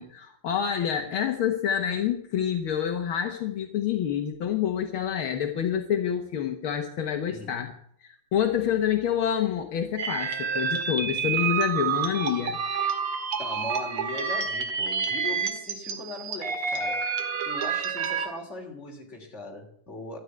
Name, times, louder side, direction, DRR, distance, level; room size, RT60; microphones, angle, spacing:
voice 1, 0.0-7.7 8.0-12.6, left 9 dB, 70° left, 5 dB, 2.0 m, -27 dB
voice 2, 7.3-7.7 13.4-20.2, left 3 dB, 30° left, 1 dB, 3.6 m, -39 dB
sound 1, 10.0-18.3, right 6 dB, 90° right, 2.7 m, -29 dB
13.0 x 10.0 x 9.3 m, 0.69 s
omnidirectional pair, 2.4 m